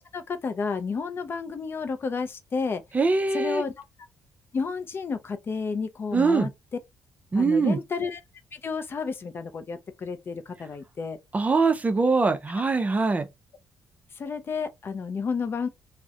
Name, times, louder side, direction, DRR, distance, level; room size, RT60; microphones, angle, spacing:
voice 1, 0.0-2.8 3.3-3.7 4.5-6.5 7.4-8.2 8.5-11.2 14.2-15.7, left 5 dB, 40° left, 0.4 m, -31 dB
voice 2, 2.9-3.6 6.1-6.5 7.3-7.8 11.3-13.3, right 4 dB, 25° right, 0.4 m, -22 dB
2.3 x 2.0 x 2.6 m
cardioid pair, 90°, 6 cm